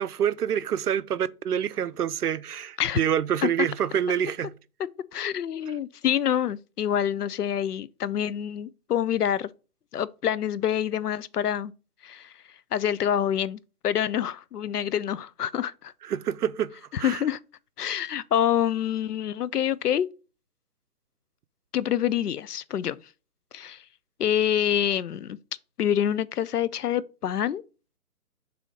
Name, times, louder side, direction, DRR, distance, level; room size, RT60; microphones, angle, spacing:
voice 1, 0.0-4.5 16.1-16.7 17.0-17.2, right 9 dB, 75° right, 0.6 m, -27 dB
voice 2, 5.1-9.5 9.9-11.7 12.0-12.3 12.7-15.9 16.9-17.4 17.8-20.1 21.7-23.0 23.5-23.8 24.2-25.4 25.8-27.6, left 10 dB, 80° left, 0.6 m, -26 dB
6.8 x 2.8 x 4.9 m
hypercardioid pair, 180°, 46 cm